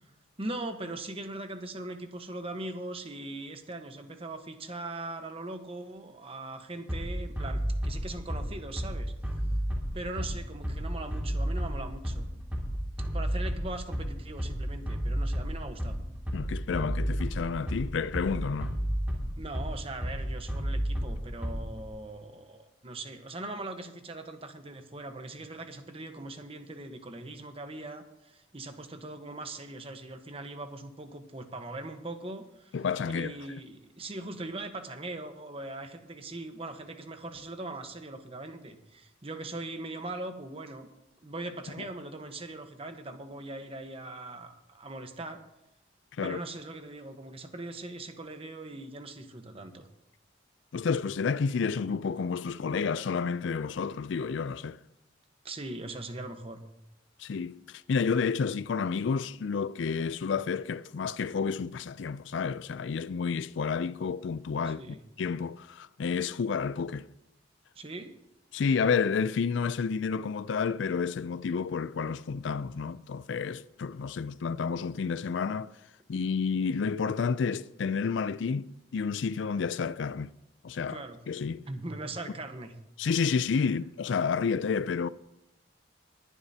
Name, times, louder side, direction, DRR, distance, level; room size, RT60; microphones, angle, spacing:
voice 1, 0.4-9.1 9.5-9.6 9.9-12.3 13.1-16.0 19.4-32.8 33.0-40.9 41.2-45.4 46.2-49.9 55.4-56.6 64.6-65.0 67.7-68.1 80.9-81.2 81.7-82.7, right 2 dB, 30° right, 1.1 m, -40 dB
Bass drum, 6.9-21.9, equal, 10° right, 2.4 m, -32 dB
voice 2, 16.3-18.8 32.7-33.3 41.8-41.9 46.2-46.4 50.7-54.8 57.2-57.6 57.9-64.9 65.2-67.1 68.5-75.7 76.1-80.3 80.6-81.6 83.0-85.1, left 5 dB, 75° left, 0.4 m, -30 dB
20.5 x 11.0 x 2.8 m
head